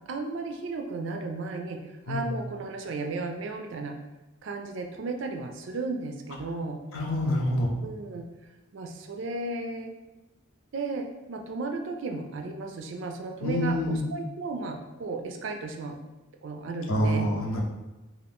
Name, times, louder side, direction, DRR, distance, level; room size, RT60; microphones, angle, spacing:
voice 1, 0.1-4.0 4.4-6.8 7.8-8.2 8.7-9.9 10.7-16.0 16.4-17.2, right 3 dB, 60° right, 4 dB, 0.4 m, -34 dB
voice 2, 6.9-7.7 13.4-14.0 16.9-17.6, equal, 80° left, 0 dB, 0.6 m, -26 dB
2.5 x 2.5 x 3.4 m, 1.1 s
head